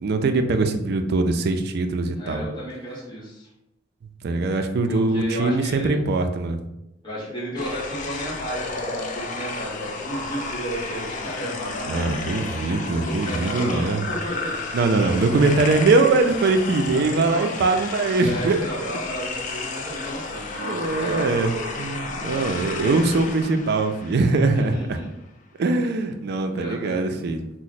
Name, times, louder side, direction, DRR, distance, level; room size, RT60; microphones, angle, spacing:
voice 1, 0.0-2.4 4.2-6.6 11.9-14.1 14.7-18.9 20.6-25.0 25.6-27.4, right 3 dB, 55° right, 7 dB, 0.4 m, -22 dB
voice 2, 2.1-3.5 4.9-6.0 7.0-12.0 12.8-14.5 16.9-17.5 18.2-21.8 22.2-23.0 24.6-25.1 26.4-27.1, equal, 25° left, -8 dB, 1.0 m, -33 dB
sound 1, 7.6-24.9, left 3 dB, 40° left, 0.4 m, -32 dB
2.9 x 2.0 x 4.0 m, 0.87 s
head